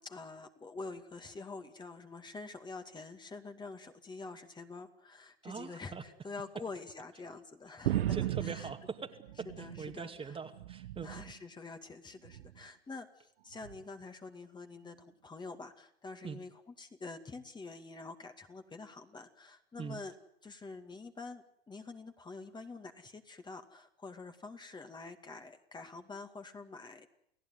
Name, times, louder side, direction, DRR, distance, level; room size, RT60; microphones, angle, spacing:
voice 1, 0.0-8.7 9.6-10.4 11.0-20.2 20.4-27.1, left 3 dB, 15° left, 6 dB, 2.3 m, -47 dB
voice 2, 5.4-6.0 7.9-11.2 16.2-16.4 19.8-20.0, right 5 dB, 20° right, 6 dB, 2.4 m, -43 dB
sound 1, 7.8-10.1 10.4-11.4 12.2-12.6 13.6-13.8, right 13 dB, 75° right, 1.2 m, -36 dB
29.5 x 17.5 x 9.6 m, 0.73 s
hypercardioid pair, 110°, 30 cm